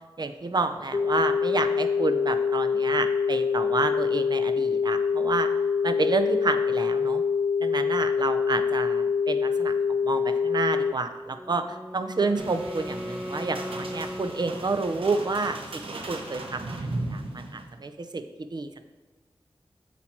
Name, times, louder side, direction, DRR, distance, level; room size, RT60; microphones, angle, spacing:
voice 1, 0.2-5.5 5.8-7.2 7.6-9.8 10.0-16.8 17.1-18.2 18.5-18.9, right 3 dB, 50° right, 8 dB, 0.6 m, -29 dB
sound 1, 0.9-10.9, left 6 dB, 45° left, 0.4 m, -25 dB
Wind instrument woodwind instrument, 11.3-15.2, equal, 10° right, 1.1 m, -38 dB
sound 2, 12.4-17.8, right 2 dB, 90° right, 0.8 m, -37 dB
8.1 x 4.5 x 4.5 m, 1.3 s
wide cardioid pair, 60°, 9 cm